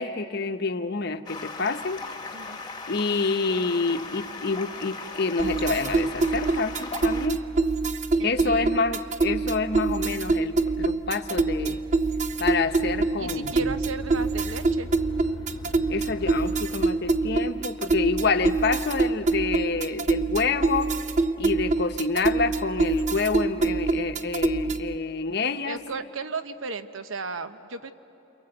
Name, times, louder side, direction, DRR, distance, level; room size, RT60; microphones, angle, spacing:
voice 1, 0.0-2.0 2.9-7.4 8.2-11.8 12.4-13.7 15.9-20.9 21.4-25.8, left 4 dB, 50° left, 8 dB, 0.8 m, -27 dB
Stream, 1.3-7.3, left 4 dB, 20° left, 1.2 m, -38 dB
sound 1, 5.4-25.0, right 3 dB, 35° right, 0.5 m, -25 dB
voice 2, 8.2-8.8 13.2-14.9 25.6-27.9, right 4 dB, 75° right, 10 dB, 0.9 m, -35 dB
sound 2, 11.2-17.7, left 2 dB, 75° left, 1.0 m, -43 dB
29.0 x 23.0 x 7.8 m, 3.0 s
head